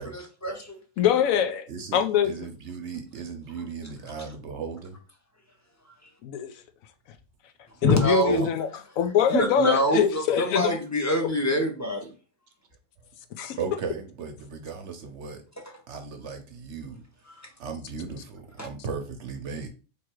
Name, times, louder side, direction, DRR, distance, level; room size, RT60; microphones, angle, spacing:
voice 1, 0.0-0.8 5.8-6.1 7.8-8.5 9.3-12.1 15.6-15.7 17.3-17.5 18.6-18.7, equal, 15° left, 0.7 m, -26 dB
voice 2, 1.0-2.3 6.2-6.5 7.8-8.7 9.0-10.8 13.4-13.6, left 9 dB, 75° left, 1.0 m, -23 dB
voice 3, 1.7-5.0 8.3-8.5 13.5-15.4 15.9-17.0 17.6-19.7, right 5 dB, 60° right, 0.9 m, -36 dB
3.5 x 3.1 x 4.5 m
omnidirectional pair, 1.5 m